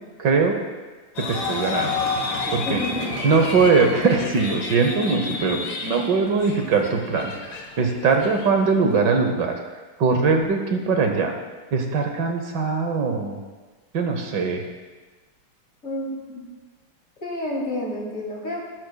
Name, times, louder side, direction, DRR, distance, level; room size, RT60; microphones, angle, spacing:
voice 1, 0.2-0.6 1.2-2.0 2.5-2.8 3.2-7.3 7.8-9.5 10.0-11.3 11.7-13.4 13.9-14.6, right 4 dB, 70° right, 4 dB, 1.6 m, -21 dB
sound 1, 1.2-9.1, left 3 dB, 85° left, 2.1 m, -30 dB
voice 2, 2.7-3.1 15.8-16.4 17.2-18.6, left 1 dB, 45° left, -3 dB, 2.6 m, -29 dB
15.0 x 11.0 x 2.3 m, 1.3 s
omnidirectional pair, 2.1 m